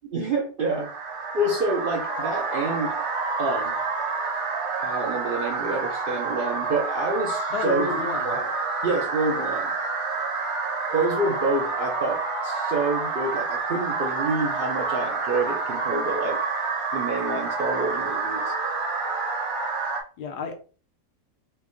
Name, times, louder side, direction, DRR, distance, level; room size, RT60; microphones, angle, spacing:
voice 1, 0.1-0.9 1.3-2.9 3.4-3.7 4.8-7.9 8.2-8.5 8.8-9.7 10.9-16.4 16.9-18.5, right 2 dB, 75° right, 0 dB, 0.5 m, -27 dB
sound 1, 0.6-20.0, right 4 dB, 50° right, 1.0 m, -28 dB
voice 2, 7.5-8.4 20.2-20.5, left 5 dB, 85° left, 5 dB, 1.3 m, -31 dB
4.7 x 2.1 x 3.0 m, 0.37 s
omnidirectional pair, 1.7 m